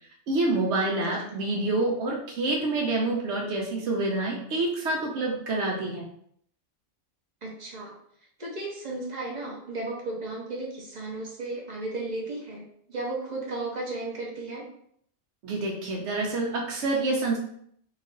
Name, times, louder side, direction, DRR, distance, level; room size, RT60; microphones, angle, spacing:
voice 1, 0.3-6.0 15.4-17.4, right 2 dB, 70° right, -2 dB, 0.9 m, -27 dB
voice 2, 7.4-7.9 8.4-14.6, right 2 dB, 45° right, -2 dB, 0.7 m, -34 dB
3.1 x 2.3 x 3.7 m, 0.67 s
omnidirectional pair, 1.3 m